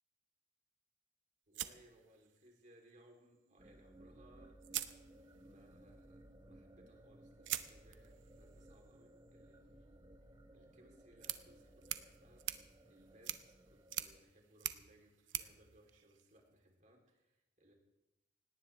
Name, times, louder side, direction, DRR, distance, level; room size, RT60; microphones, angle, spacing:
voice 1, 1.5-4.6 5.4-10.0 10.5-12.4 12.9-17.7, right 1 dB, 45° right, 1 dB, 3.4 m, -66 dB
sound 1, 1.5-2.7 4.0-4.1 4.6-5.6 7.4-16.6, right 12 dB, 90° right, 0.8 m, -46 dB
sound 2, 3.6-14.2, right 1 dB, 25° right, 1.0 m, -60 dB
19.0 x 17.5 x 3.4 m, 0.94 s
head